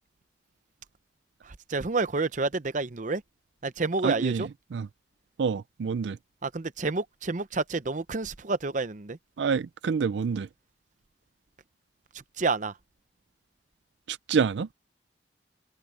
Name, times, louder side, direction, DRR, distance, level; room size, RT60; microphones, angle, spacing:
voice 1, 1.4-3.2 3.6-4.5 6.4-9.2 12.4-12.7, right 3 dB, 45° right, 0.7 m, -29 dB
voice 2, 4.0-4.9 5.4-6.2 9.4-10.5 14.1-14.7, right 6 dB, 80° right, 0.4 m, -27 dB
head